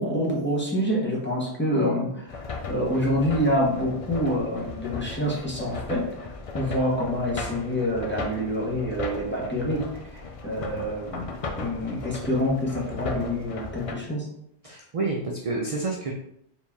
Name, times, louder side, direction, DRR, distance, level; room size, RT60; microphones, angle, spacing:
voice 1, 0.0-9.9 10.1-14.3, equal, 10° left, -4 dB, 1.0 m, -27 dB
sound 1, 2.3-13.9, left 4 dB, 55° left, 0.3 m, -37 dB
voice 2, 14.6-16.1, right 3 dB, 50° right, 1 dB, 0.4 m, -29 dB
4.4 x 2.9 x 3.5 m, 0.75 s
omnidirectional pair, 1.2 m